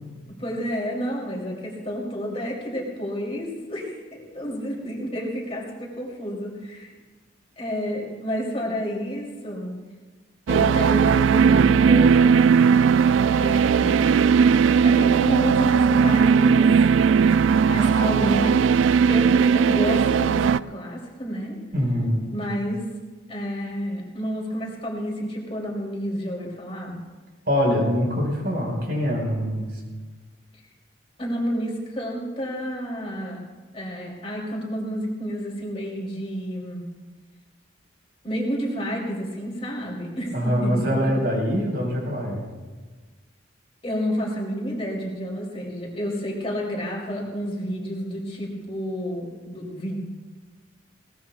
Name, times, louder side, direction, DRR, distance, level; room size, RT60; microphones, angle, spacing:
voice 1, 0.4-6.9 7.6-9.7 10.5-12.4 13.2-16.7 17.7-18.6 19.1-21.6 22.3-22.8 23.3-27.0 31.2-33.4 33.7-36.8 38.2-41.1 43.8-50.0, equal, 30° left, -3 dB, 3.0 m, -30 dB
sound 1, 10.5-20.6, right 6 dB, 75° right, 0.3 m, -18 dB
voice 2, 21.7-22.2 27.5-29.7 40.3-42.4, equal, 55° right, -1 dB, 4.8 m, -24 dB
21.0 x 18.0 x 2.4 m, 1.3 s
head